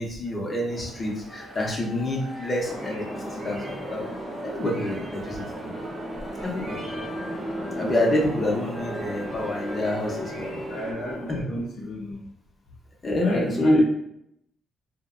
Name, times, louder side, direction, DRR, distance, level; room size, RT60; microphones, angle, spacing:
voice 1, 0.0-4.0 4.4-5.7 6.4-6.8 7.7-10.8 11.3-11.4 13.0-13.8, left 1 dB, 30° left, -2 dB, 0.6 m, -27 dB
sound 1, 0.7-10.9, equal, 20° right, 0.6 m, -41 dB
sound 2, 2.6-11.4, right 1 dB, 50° right, 0.7 m, -35 dB
voice 2, 10.7-12.2 13.2-13.8, left 1 dB, 90° left, -4 dB, 0.6 m, -32 dB
2.4 x 2.0 x 2.4 m, 0.75 s
cardioid pair, 105°, 0 cm